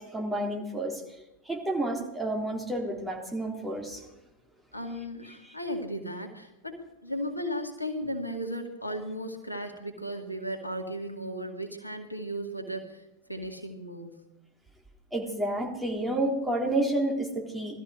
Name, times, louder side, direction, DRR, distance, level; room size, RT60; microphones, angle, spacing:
voice 1, 0.0-4.1 5.4-5.6 15.1-17.8, right 1 dB, 5° right, -1 dB, 3.6 m, -30 dB
voice 2, 4.7-13.0 13.3-14.2, equal, 85° left, 4 dB, 2.1 m, -35 dB
19.5 x 13.5 x 5.1 m, 0.91 s
figure-of-eight pair, 90°, 0 cm